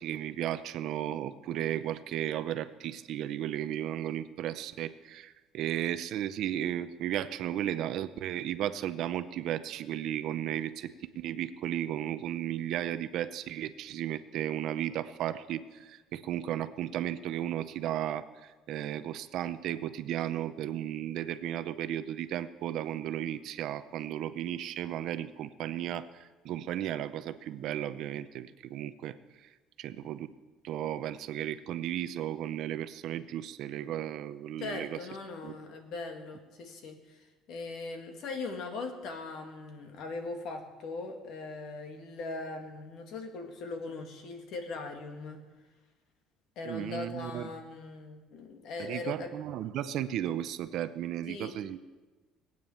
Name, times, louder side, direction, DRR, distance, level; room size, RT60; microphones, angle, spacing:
voice 1, 0.0-10.9 11.2-29.5 29.8-30.3 30.6-35.0 35.4-35.6 46.7-47.5 48.8-51.8, right 11 dB, 50° right, 12 dB, 0.6 m, -34 dB
voice 2, 34.6-45.4 46.6-49.3 51.3-51.5, left 3 dB, 50° left, 5 dB, 2.0 m, -40 dB
19.5 x 9.1 x 7.0 m, 1.3 s
cardioid pair, 180°, 0 cm